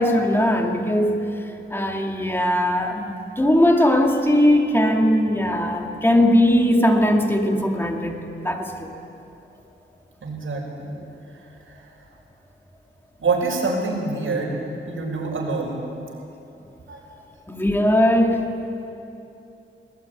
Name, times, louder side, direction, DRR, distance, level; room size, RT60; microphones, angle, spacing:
voice 1, 0.0-1.4 1.7-8.9 17.5-18.4, left 1 dB, 10° left, 2 dB, 2.4 m, -19 dB
voice 2, 10.2-11.0 11.4-11.8 13.2-14.6 14.9-15.9 16.9-17.0, right 3 dB, 75° right, -1 dB, 6.0 m, -26 dB
21.0 x 20.5 x 9.6 m, 2.8 s
wide cardioid pair, 115°, 21 cm